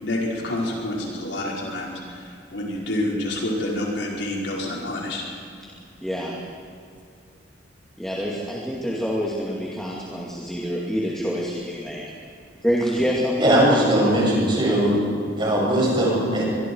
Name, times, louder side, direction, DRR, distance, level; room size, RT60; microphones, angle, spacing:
voice 1, 0.0-5.2, left 1 dB, 75° left, -3 dB, 5.2 m, -28 dB
voice 2, 6.0-6.3 8.0-12.0 12.6-13.9, equal, 5° left, -5 dB, 2.5 m, -26 dB
voice 3, 13.4-14.9 15.4-16.4, right 1 dB, 30° right, -4 dB, 7.4 m, -19 dB
25.0 x 23.5 x 4.8 m, 2.4 s
head